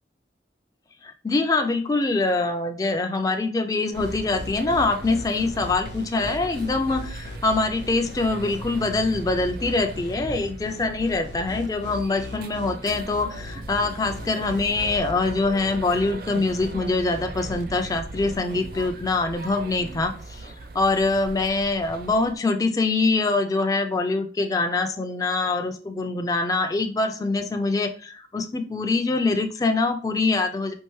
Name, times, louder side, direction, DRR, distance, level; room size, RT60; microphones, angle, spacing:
voice 1, 1.0-30.7, left 3 dB, 20° left, 6 dB, 0.3 m, -24 dB
sound 1, 3.9-22.3, right 2 dB, 55° right, 0.5 m, -39 dB
sound 2, 4.0-18.9, left 2 dB, 85° left, 0.4 m, -40 dB
4.5 x 2.9 x 3.0 m, 0.39 s
head